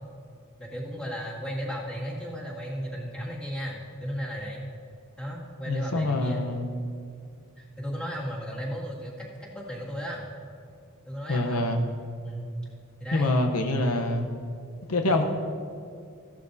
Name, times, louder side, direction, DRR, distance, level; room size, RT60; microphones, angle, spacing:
voice 1, 0.6-4.6 5.2-6.5 7.6-10.2 11.0-11.7 12.2-12.5 13.0-13.3 15.1-15.3, equal, 5° left, -6 dB, 2.2 m, -35 dB
voice 2, 5.7-6.7 11.3-11.8 13.1-14.3 14.9-15.3, left 2 dB, 90° left, 4 dB, 0.9 m, -25 dB
15.5 x 12.0 x 2.7 m, 2.3 s
head